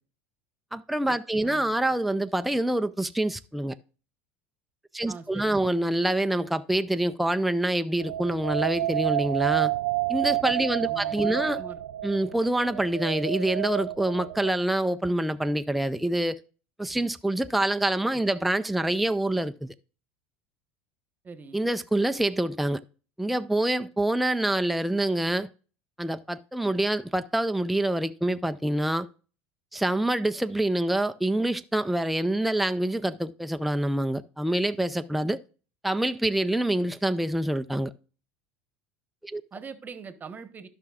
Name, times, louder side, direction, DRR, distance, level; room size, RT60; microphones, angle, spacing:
voice 1, 0.7-3.8 4.9-9.7 10.1-11.6 12.0-16.4 16.8-19.7 21.5-22.8 23.2-25.5 26.0-29.1 29.7-35.4 35.8-37.9 39.2-39.4, right 1 dB, ahead, 0.4 m, -26 dB
voice 2, 1.4-1.8 5.1-5.9 10.8-11.8 21.2-21.6 39.5-40.7, right 5 dB, 25° right, 1.2 m, -43 dB
sound 1, 8.0-14.5, right 15 dB, 80° right, 0.4 m, -29 dB
13.5 x 5.9 x 2.4 m
hypercardioid pair, 90°, 6 cm